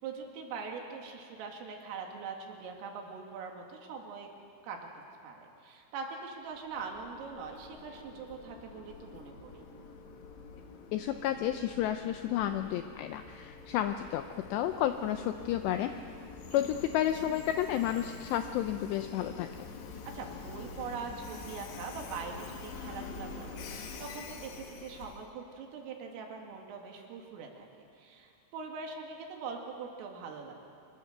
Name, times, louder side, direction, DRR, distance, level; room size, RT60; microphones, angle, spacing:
voice 1, 0.0-4.3 4.6-9.7 16.5-16.7 20.1-30.5, right 5 dB, 85° right, 2 dB, 4.9 m, -42 dB
Train, 6.5-25.3, left 4 dB, 65° left, 3.6 m, -46 dB
voice 2, 10.9-15.9 16.5-19.5, left 11 dB, 85° left, 8 dB, 2.5 m, -31 dB
25.5 x 22.0 x 6.7 m, 2.5 s
omnidirectional pair, 5.7 m